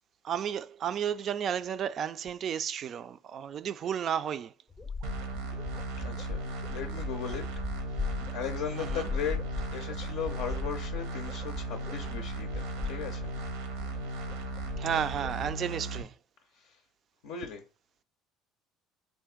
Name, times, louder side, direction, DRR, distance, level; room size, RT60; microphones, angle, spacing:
voice 1, 0.2-4.5 8.8-9.0 14.8-16.1, right 8 dB, 50° right, 0.3 m, -32 dB
sound 1, 4.7-15.5, left 3 dB, 25° left, 0.5 m, -39 dB
sound 2, 5.0-16.0, right 2 dB, 80° right, 0.7 m, -37 dB
voice 2, 5.9-9.4 9.7-13.3 16.6-16.8 17.2-17.6, left 7 dB, 75° left, 0.5 m, -38 dB
3.6 x 2.4 x 3.6 m
hypercardioid pair, 70°, 0 cm